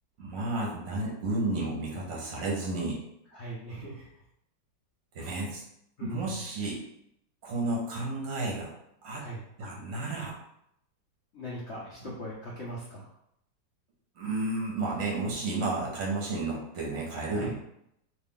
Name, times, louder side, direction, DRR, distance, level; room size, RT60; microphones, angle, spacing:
voice 1, 0.2-3.0 5.1-5.6 6.0-6.8 7.4-8.7 9.0-9.2 9.6-10.4 12.0-12.1 14.2-17.5, right 2 dB, 60° right, -3 dB, 0.9 m, -32 dB
voice 2, 3.3-4.2 5.2-5.4 6.0-6.4 9.1-9.4 11.3-13.1 17.3-17.5, equal, 75° left, -5 dB, 0.6 m, -40 dB
3.1 x 2.5 x 3.6 m, 0.77 s
omnidirectional pair, 2.0 m